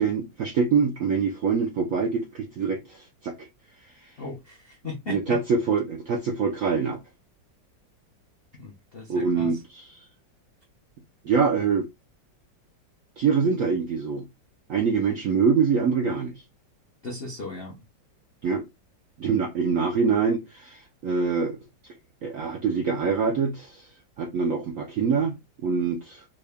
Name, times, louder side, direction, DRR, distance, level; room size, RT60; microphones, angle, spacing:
voice 1, 0.0-3.5 4.0-4.1 5.1-7.0 9.1-10.0 11.2-11.9 13.2-14.2 14.7-16.3 18.4-18.6 19.2-21.6 22.2-23.9 24.2-25.4 25.6-26.3, right 5 dB, 75° right, 0.7 m, -25 dB
voice 2, 4.2-5.4 8.5-9.6 17.0-17.8, left 3 dB, 65° left, 0.5 m, -37 dB
3.6 x 2.2 x 3.4 m
omnidirectional pair, 2.0 m